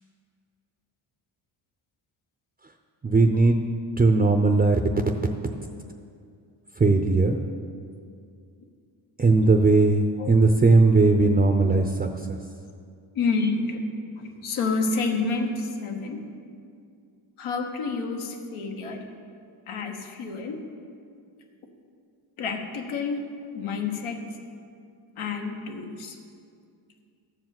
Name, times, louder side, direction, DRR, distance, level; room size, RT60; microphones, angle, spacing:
voice 1, 3.0-3.6 4.0-4.8 6.8-7.4 9.2-12.4, right 3 dB, 20° right, 5 dB, 0.6 m, -19 dB
voice 2, 13.1-16.2 17.4-19.0 19.7-20.6 22.4-23.3 23.5-24.3 25.2-26.2, left 4 dB, 85° left, 2 dB, 1.5 m, -29 dB
13.0 x 4.8 x 7.7 m, 2.3 s
cardioid pair, 100°, 48 cm